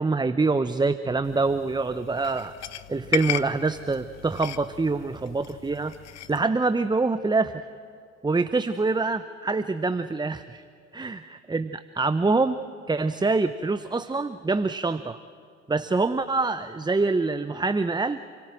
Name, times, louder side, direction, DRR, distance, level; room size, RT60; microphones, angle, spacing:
voice 1, 0.0-2.5 2.9-5.9 6.3-7.6 8.2-10.6 10.9-12.6 12.9-15.2 15.7-18.2, right 3 dB, 15° right, 12 dB, 0.8 m, -25 dB
sound 1, 1.2-6.5, left 11 dB, 50° left, 1.1 m, -36 dB
29.0 x 18.0 x 7.7 m, 2.3 s
hypercardioid pair, 60°, 33 cm